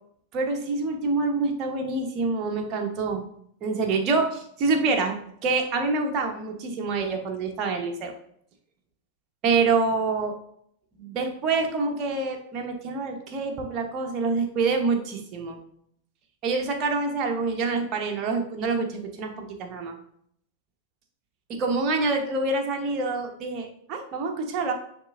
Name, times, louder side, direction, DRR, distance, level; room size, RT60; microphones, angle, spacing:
voice 1, 0.3-3.2 3.6-5.1 5.4-8.1 9.4-10.3 10.9-15.6 16.4-19.9 21.5-24.7, right 3 dB, 35° right, 3 dB, 1.2 m, -26 dB
9.5 x 3.7 x 2.6 m, 0.67 s
figure-of-eight pair, 90°, 0 cm